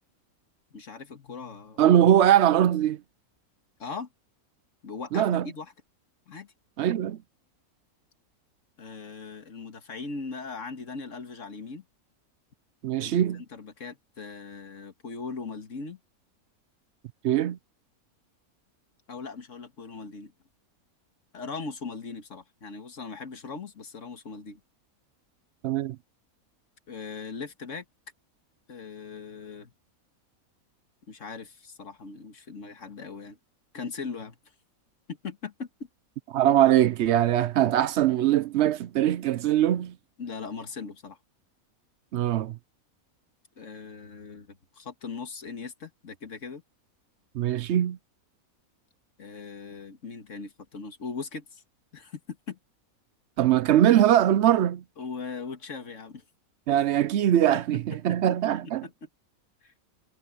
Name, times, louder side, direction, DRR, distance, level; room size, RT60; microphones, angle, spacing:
voice 1, 0.7-1.9 3.8-4.1 4.8-5.7 6.3-6.5 8.8-11.8 13.0-16.0 19.1-20.3 21.3-24.6 26.9-27.8 28.7-29.7 31.1-33.4 33.7-34.4 35.1-35.7 40.2-41.2 43.6-46.6 49.2-51.6 51.9-52.6 55.0-56.2 58.1-58.2 58.6-59.1 59.6-59.7, left 4 dB, 55° left, 2.1 m, -39 dB
voice 2, 1.8-3.0 5.1-5.5 6.8-7.2 12.8-13.4 17.2-17.6 25.6-26.0 36.3-39.9 42.1-42.6 47.3-48.0 53.4-54.8 56.7-58.9, right 11 dB, 65° right, 0.7 m, -22 dB
omnidirectional pair, 1.5 m